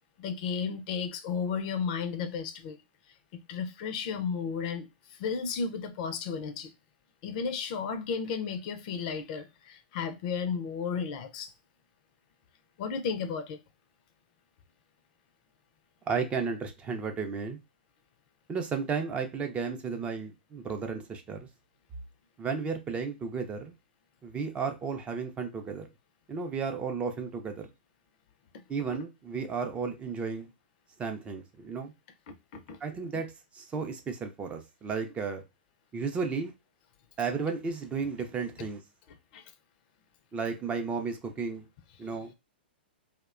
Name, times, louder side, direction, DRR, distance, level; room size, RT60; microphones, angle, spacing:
voice 1, 0.2-2.8 3.3-6.7 7.2-11.5 12.8-13.6 28.5-28.6 32.3-32.8 39.3-39.4, left 6 dB, 50° left, 0.4 m, -33 dB
voice 2, 16.1-17.6 18.5-21.5 22.4-23.7 24.2-25.9 26.3-27.7 28.7-30.5 31.0-31.9 32.8-33.3 33.5-35.4 35.9-36.5 37.2-38.8 40.3-41.6 42.0-42.3, right 5 dB, 20° right, 0.4 m, -33 dB
2.7 x 2.1 x 2.4 m
hypercardioid pair, 120°, 6 cm